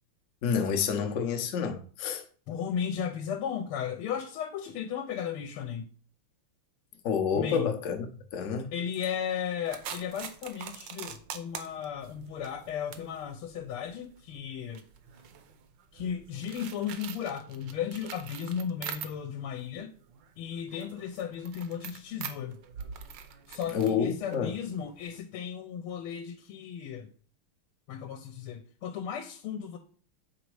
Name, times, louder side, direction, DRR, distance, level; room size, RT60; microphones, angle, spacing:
voice 1, 0.4-2.2 7.0-8.0 8.3-8.7 23.7-24.5, left 7 dB, 65° left, 0.8 m, -28 dB
voice 2, 2.5-5.9 7.3-7.7 8.7-14.8 15.9-20.0 20.4-22.6 23.5-27.1 27.9-29.8, left 8 dB, 85° left, 1.5 m, -35 dB
sound 1, 9.7-19.5 19.8-25.2, right 8 dB, 70° right, 1.2 m, -45 dB
6.9 x 4.0 x 4.7 m
omnidirectional pair, 2.4 m